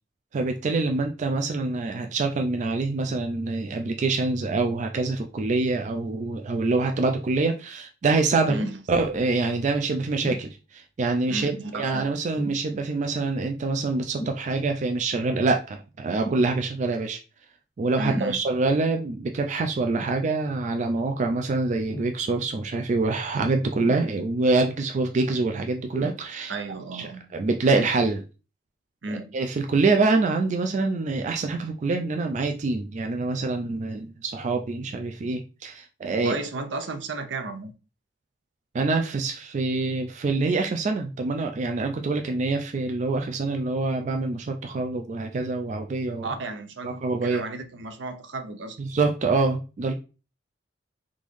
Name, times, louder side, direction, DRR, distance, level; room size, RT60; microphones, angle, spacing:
voice 1, 0.3-8.6 8.9-17.2 17.8-26.5 26.9-28.3 29.3-36.4 38.7-46.4 46.8-47.4 48.8-49.9, right 3 dB, 40° right, 0.3 m, -25 dB
sound 1, 8.5-8.8 10.2-10.5 12.3-12.7 14.2-14.4 16.2-16.5 18.1-18.4 19.9-20.2 21.9-22.1 23.8-24.4 25.9-26.2 27.0-27.1, right 1 dB, 30° left, 0.6 m, -35 dB
voice 2, 11.3-12.1 18.0-18.4 26.5-27.2 29.0-29.3 36.2-37.7 46.2-48.8, right 3 dB, 75° right, 0.6 m, -33 dB
3.7 x 2.5 x 3.1 m
head